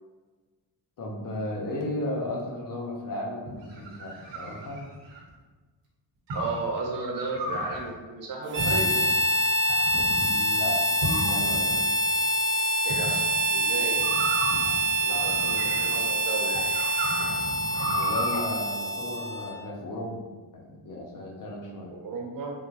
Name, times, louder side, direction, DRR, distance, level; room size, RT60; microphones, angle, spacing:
voice 1, 1.0-4.8 10.0-11.9 17.8-20.3 20.5-21.9, left 1 dB, 45° left, -1 dB, 0.8 m, -35 dB
sound 1, 3.5-5.3 6.3-6.6 7.3-7.8 8.6-9.1 9.7-10.3 11.0-11.8 12.9-13.2 14.0-16.1 16.5-18.4, right 1 dB, 70° right, 1.0 m, -33 dB
voice 2, 6.3-8.9 12.8-13.2 13.5-14.0 15.0-16.7 21.9-22.5, right 3 dB, 50° right, -1 dB, 0.8 m, -33 dB
Harmonica, 8.5-19.6, right 1 dB, 30° right, 0.4 m, -26 dB
3.5 x 2.2 x 2.9 m, 1.3 s
cardioid pair, 115°, 45 cm